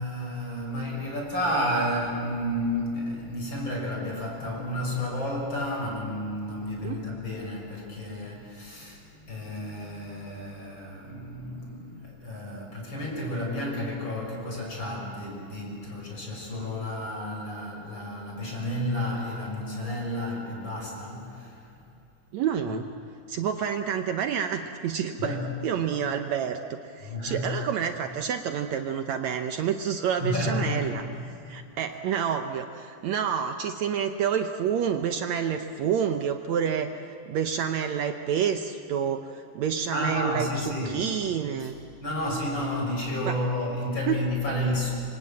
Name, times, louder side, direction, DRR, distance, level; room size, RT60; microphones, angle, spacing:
voice 1, 0.0-21.6 25.2-25.5 27.0-27.6 30.2-30.9 39.9-41.1 41.6-41.7 42.0-44.9, left 1 dB, 35° left, -1 dB, 6.7 m, -31 dB
voice 2, 22.3-22.9 23.3-25.4 25.6-41.8 43.3-43.4 44.1-44.2, right 8 dB, 70° right, 7 dB, 2.0 m, -28 dB
27.0 x 25.0 x 8.8 m, 2.6 s
omnidirectional pair, 3.6 m